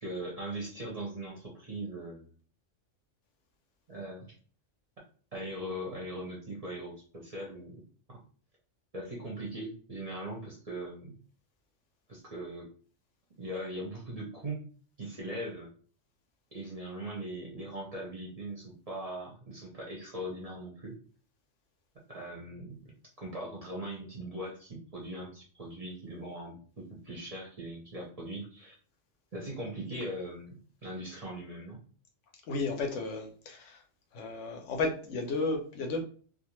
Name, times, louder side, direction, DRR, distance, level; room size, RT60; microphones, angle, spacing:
voice 1, 0.0-2.3 3.9-4.3 5.3-7.8 8.9-11.2 12.1-12.7 13.4-14.6 15.0-15.7 16.5-21.0 22.1-22.8 23.2-28.8 29.3-31.8, right 1 dB, 40° right, -3 dB, 0.6 m, -40 dB
voice 2, 32.5-33.8 34.1-36.0, left 3 dB, 75° left, 3 dB, 0.9 m, -33 dB
2.4 x 2.2 x 3.0 m, 0.43 s
omnidirectional pair, 1.3 m